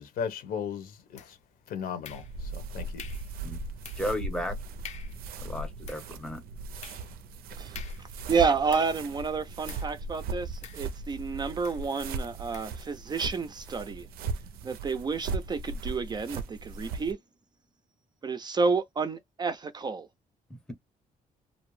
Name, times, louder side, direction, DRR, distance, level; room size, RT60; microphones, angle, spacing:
voice 1, 0.0-1.4 1.7-3.0, left 7 dB, 75° left, 0.9 m, -36 dB
sound 1, 1.2-1.6 2.0-2.6 3.0-3.4 3.8-4.2 4.5-4.6 4.8-5.2 5.7-9.1 9.7-10.0 10.6-11.2 11.6-11.9 12.5-12.8, left 8 dB, 50° left, 0.5 m, -48 dB
sound 2, 2.1-17.1, right 3 dB, 90° right, 0.4 m, -38 dB
voice 2, 4.0-4.6 5.4-6.4 20.5-20.7, left 1 dB, 5° left, 0.7 m, -34 dB
voice 3, 7.6-14.1 14.6-17.2 18.2-20.1, right 5 dB, 30° right, 0.4 m, -30 dB
2.5 x 2.0 x 3.0 m
cardioid pair, 125°, 15 cm